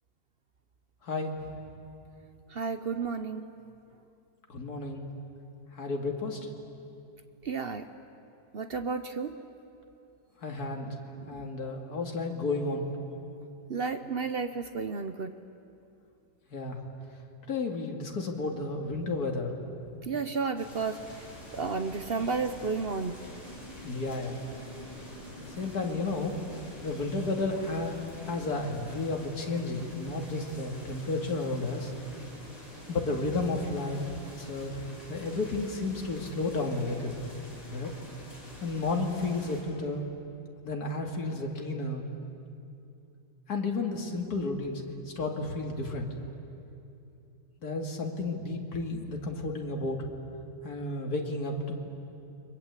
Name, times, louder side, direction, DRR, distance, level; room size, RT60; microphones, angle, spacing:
voice 1, 1.0-1.3 4.5-5.1 5.7-6.4 10.4-10.9 11.3-12.8 16.5-16.8 17.5-19.5 23.8-24.4 25.4-26.4 26.8-28.0 28.3-31.9 32.9-34.1 34.4-34.8 35.1-37.2 37.7-37.9 38.6-40.1 40.6-42.0 43.5-46.1 47.6-50.1 50.6-51.8, left 3 dB, 55° left, 2 dB, 2.8 m, -32 dB
voice 2, 2.5-3.5 7.4-7.9 8.5-9.4 11.2-11.5 13.7-15.3 20.0-21.2 21.5-23.2, right 4 dB, 50° right, 9 dB, 0.7 m, -32 dB
sound 1, 20.6-39.6, equal, 20° left, 6.0 m, -46 dB
29.5 x 23.0 x 8.3 m, 2.7 s
omnidirectional pair, 2.0 m